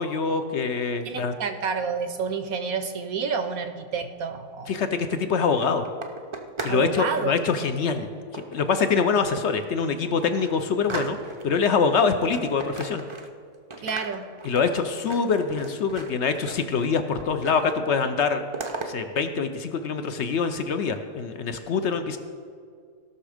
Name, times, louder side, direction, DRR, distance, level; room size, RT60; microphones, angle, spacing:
voice 1, 0.0-1.3 4.7-5.8 6.6-8.1 8.3-11.2 11.4-13.0 14.4-18.4 18.9-22.2, left 5 dB, 65° left, 8 dB, 0.7 m, -24 dB
voice 2, 1.0-4.7 6.7-7.3 13.8-14.3, right 5 dB, 70° right, 9 dB, 1.0 m, -29 dB
sound 1, 4.9-6.9 7.1-7.5 8.3-9.2 9.6-9.7 10.0-11.6 12.0-13.5 13.7-16.9 17.2-17.8 18.0-18.9, right 3 dB, 45° right, 0.3 m, -38 dB
16.5 x 6.2 x 5.0 m, 2.1 s
omnidirectional pair, 1.8 m